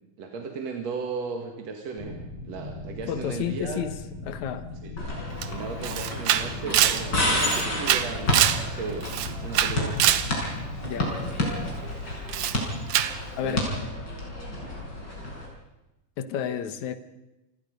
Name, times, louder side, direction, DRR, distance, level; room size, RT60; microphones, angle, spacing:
voice 1, 0.2-3.8 4.8-4.9 5.5-9.1 9.4-10.2 13.4-13.8, right 5 dB, 55° right, 2.8 m, -36 dB
sound 1, 2.0-12.0, left 2 dB, 85° left, 6.6 m, -39 dB
voice 2, 3.1-4.0 4.2-4.7 10.8-11.1 13.4-13.7 16.2-17.0, left 9 dB, 65° left, 2.3 m, -31 dB
sound 2, 5.0-15.5, left 1 dB, 30° left, 6.1 m, -30 dB
Camera, 5.4-5.5 5.8-8.6 9.0-10.3 12.3-12.6 12.9-13.2, right 11 dB, 70° right, 1.9 m, -24 dB
28.0 x 20.5 x 5.3 m
omnidirectional pair, 4.1 m